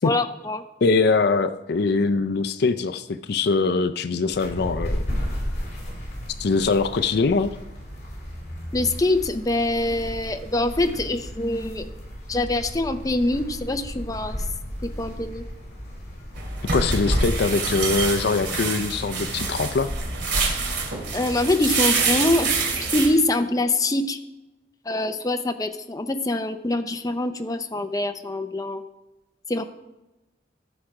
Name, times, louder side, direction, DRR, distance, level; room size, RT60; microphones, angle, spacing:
voice 1, 0.0-0.6 8.7-12.0 12.3-14.4 14.8-15.4 21.1-22.5 22.8-24.2 24.8-28.8 29.5-29.6, left 2 dB, 20° left, 7 dB, 0.6 m, -24 dB
voice 2, 0.8-5.0 6.4-7.6 16.7-19.9, left 4 dB, 65° left, 11 dB, 0.5 m, -22 dB
sound 1, 4.3-18.1, equal, 40° left, 4.5 m, -34 dB
sound 2, 16.3-23.1, right 3 dB, 75° right, 2.5 m, -25 dB
15.0 x 6.3 x 4.8 m, 1.0 s
head